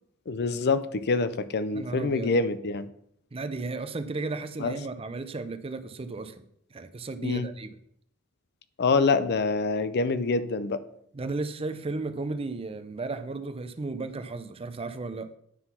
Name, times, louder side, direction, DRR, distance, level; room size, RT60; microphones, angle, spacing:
voice 1, 0.3-2.9 4.6-4.8 7.2-7.5 8.8-10.8, left 4 dB, 50° left, 13 dB, 0.5 m, -26 dB
voice 2, 1.7-2.3 3.3-6.4 6.7-7.7 11.1-15.3, right 3 dB, 25° right, 10 dB, 0.5 m, -34 dB
9.8 x 3.9 x 5.7 m, 0.69 s
head